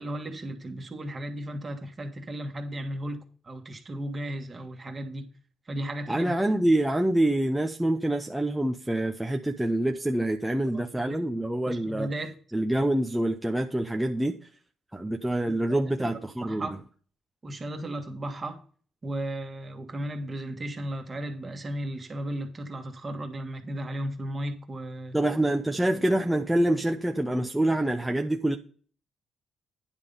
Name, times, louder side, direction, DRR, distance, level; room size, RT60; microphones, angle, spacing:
voice 1, 0.0-5.3 5.7-6.3 10.7-11.3 11.7-12.3 15.5-16.8 17.4-18.6 19.0-25.2, right 1 dB, 30° right, 1.7 m, -35 dB
voice 2, 6.1-12.1 12.5-14.4 14.9-16.7 25.1-28.6, right 1 dB, 5° right, 0.6 m, -26 dB
9.9 x 3.7 x 6.8 m
cardioid pair, 90°, 0 cm